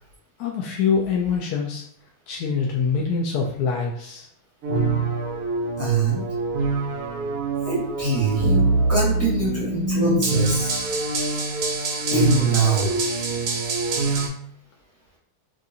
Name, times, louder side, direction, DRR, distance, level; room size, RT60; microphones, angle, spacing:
voice 1, 0.4-1.8 2.3-4.3, left 5 dB, 80° left, -1 dB, 0.8 m, -24 dB
sound 1, 4.6-14.3, right 3 dB, 85° right, 0.7 m, -24 dB
voice 2, 5.8-6.2 7.6-8.6 8.9-10.8 12.1-12.9, right 3 dB, 15° right, -6 dB, 0.6 m, -23 dB
4.7 x 2.5 x 2.7 m, 0.65 s
omnidirectional pair, 2.2 m